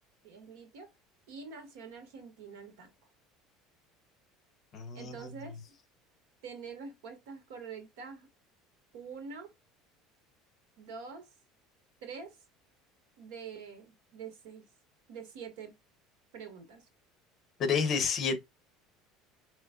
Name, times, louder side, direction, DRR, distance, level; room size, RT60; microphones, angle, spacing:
voice 1, 0.2-0.9 1.3-2.9 4.9-5.6 6.4-8.3 8.9-9.5 10.8-11.3 12.0-12.4 13.2-14.6 15.1-15.7 16.3-16.8, right 5 dB, 80° right, 1.7 m, -45 dB
voice 2, 4.7-5.3 17.6-18.4, left 6 dB, 30° left, 0.9 m, -30 dB
5.3 x 3.0 x 2.4 m
cardioid pair, 180°, 0 cm